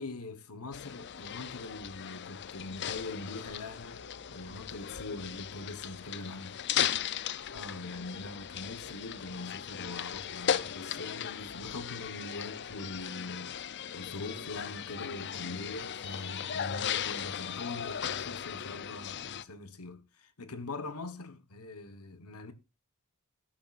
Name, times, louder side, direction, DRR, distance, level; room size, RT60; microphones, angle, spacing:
voice 1, 0.0-4.0 4.3-6.6 7.5-13.6 13.9-22.5, left 3 dB, 80° left, 1.3 m, -42 dB
sound 1, 0.7-19.4, left 9 dB, 50° left, 0.6 m, -37 dB
13.5 x 12.0 x 2.5 m
head